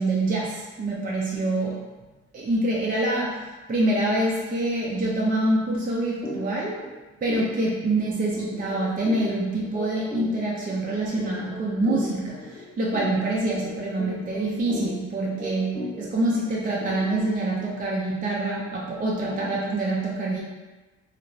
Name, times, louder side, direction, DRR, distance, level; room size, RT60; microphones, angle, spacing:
voice 1, 0.0-1.8 2.3-6.8 7.2-20.4, right 2 dB, 30° right, -5 dB, 0.5 m, -26 dB
sound 1, 6.2-6.4 6.8-6.9 7.3-17.5, left 1 dB, 15° left, 0.7 m, -36 dB
2.5 x 2.4 x 3.1 m, 1.2 s
cardioid pair, 90°, 30 cm